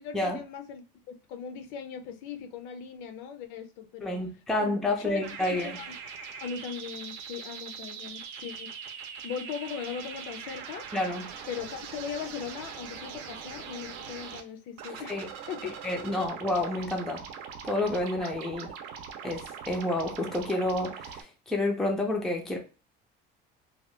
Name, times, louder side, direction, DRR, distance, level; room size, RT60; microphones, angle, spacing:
voice 1, 0.0-4.2 4.6-6.0 6.4-8.7 9.2-10.9 11.5-15.2 15.5-15.8 16.2-16.3 18.5-18.6, left 7 dB, 65° left, 0.5 m, -39 dB
voice 2, 4.0-5.8 10.9-11.3 15.1-15.3 15.6-17.3 17.6-18.7 19.2-22.6, left 1 dB, ahead, 0.4 m, -29 dB
sound 1, 5.2-14.4 14.8-21.2, right 7 dB, 65° right, 0.6 m, -42 dB
2.8 x 2.3 x 3.1 m
cardioid pair, 170°, 21 cm